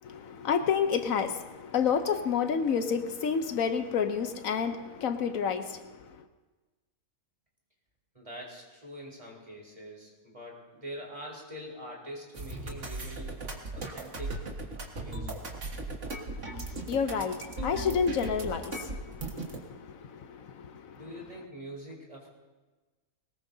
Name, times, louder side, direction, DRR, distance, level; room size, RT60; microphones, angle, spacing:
voice 1, 0.0-6.2 16.3-21.1, left 6 dB, 75° left, 8 dB, 1.2 m, -30 dB
voice 2, 8.1-13.4 13.7-14.4 15.0-15.4 20.9-22.3, right 1 dB, 25° right, -2 dB, 3.8 m, -44 dB
sound 1, 12.3-19.6, right 2 dB, 60° right, 2.0 m, -37 dB
21.5 x 19.5 x 2.7 m, 1.3 s
omnidirectional pair, 1.4 m